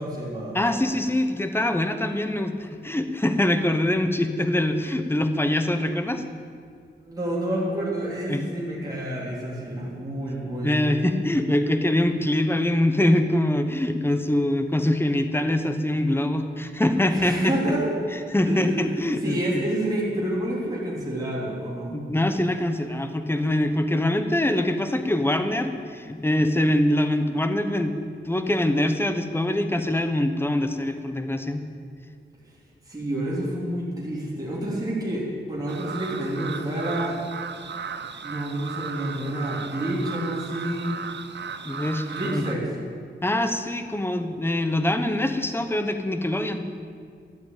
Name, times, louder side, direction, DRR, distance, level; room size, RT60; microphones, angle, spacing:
voice 1, 0.0-0.6 7.0-10.9 17.1-17.9 18.4-22.0 32.9-37.2 38.2-40.9 42.1-42.7, right 1 dB, 20° right, -7 dB, 3.6 m, -29 dB
voice 2, 0.5-6.2 8.3-8.4 10.6-17.5 18.3-19.6 21.9-31.6 41.6-42.1 42.3-42.4 43.2-46.7, left 1 dB, 10° left, 7 dB, 1.0 m, -24 dB
sound 1, 35.7-42.5, right 6 dB, 60° right, 0.7 m, -36 dB
13.0 x 8.0 x 8.9 m, 2.1 s
wide cardioid pair, 110°, 20 cm